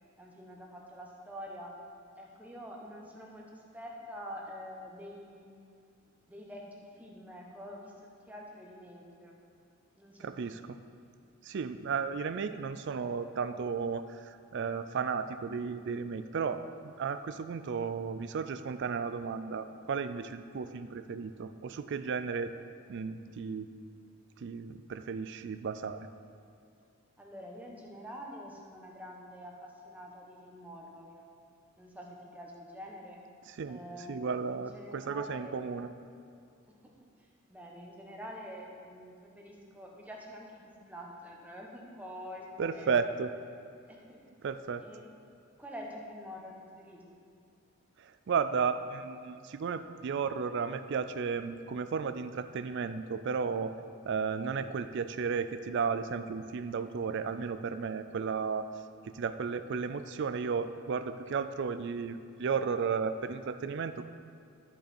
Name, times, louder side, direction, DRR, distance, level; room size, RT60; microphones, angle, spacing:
voice 1, 0.2-1.7 2.1-5.5 6.3-9.4 10.0-10.5 27.2-31.2 31.8-33.2 33.7-34.2 34.5-35.7 36.6-36.9 37.5-42.9 43.9-44.4 44.8-45.0 45.6-47.0 54.5-54.7 59.7-59.8, equal, 5° right, -1 dB, 1.0 m, -46 dB
voice 2, 10.2-10.8 11.4-22.5 22.9-23.7 24.4-26.1 33.5-33.8 34.1-35.9 42.6-43.3 44.4-44.8 48.0-53.7 54.0-58.7 59.0-64.1, right 5 dB, 55° right, 11 dB, 0.4 m, -34 dB
13.0 x 5.5 x 4.3 m, 2.4 s
head